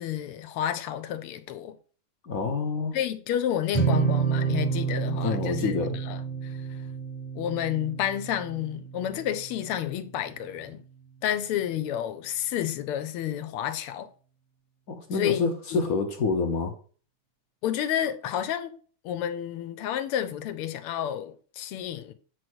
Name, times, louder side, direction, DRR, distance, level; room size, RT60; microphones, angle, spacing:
voice 1, 0.0-1.8 2.9-6.8 7.4-10.8 11.2-14.1 15.1-15.8 17.6-18.7 19.0-22.1, left 10 dB, 85° left, 1.7 m, -30 dB
voice 2, 2.2-3.0 5.2-6.0 14.9-16.8, left 4 dB, 55° left, 1.0 m, -27 dB
sound 1, 3.7-10.2, right 6 dB, 15° left, 0.5 m, -30 dB
8.4 x 3.2 x 6.1 m
omnidirectional pair, 2.4 m